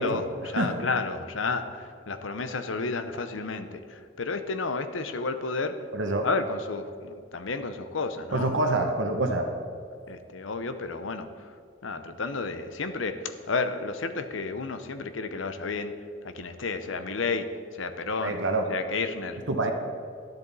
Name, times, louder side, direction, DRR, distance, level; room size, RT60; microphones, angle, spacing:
voice 1, 0.0-5.8 6.2-8.8 10.1-11.5 11.8-15.9 16.2-18.4 18.7-19.4, left 4 dB, 90° left, 9 dB, 0.8 m, -31 dB
voice 2, 5.9-6.3 8.3-9.5 18.2-18.7 19.5-19.7, right 2 dB, 80° right, 4 dB, 1.0 m, -26 dB
12.0 x 10.5 x 4.1 m, 2.3 s
head